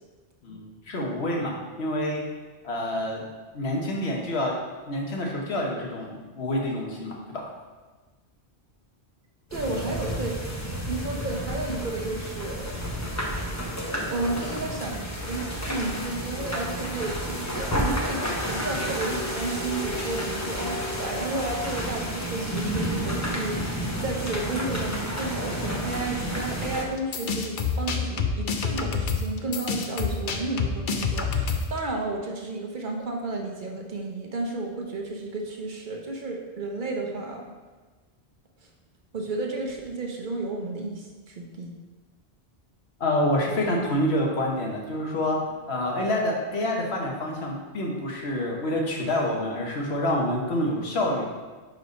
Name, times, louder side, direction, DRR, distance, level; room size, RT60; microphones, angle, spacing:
voice 1, 0.4-2.2 2.6-3.2 3.5-4.6 4.9-7.4 43.0-51.3, left 1 dB, 90° left, -1 dB, 1.4 m, -27 dB
sound 1, 9.5-26.8, equal, 15° left, 0.9 m, -30 dB
voice 2, 9.5-10.4 10.9-13.5 14.1-18.2 18.5-23.7 24.0-37.5 39.1-41.7, right 3 dB, 55° right, 1 dB, 0.9 m, -32 dB
sound 2, 27.0-31.8, left 5 dB, 60° left, 0.7 m, -27 dB
4.8 x 4.7 x 5.2 m, 1.3 s
omnidirectional pair, 1.1 m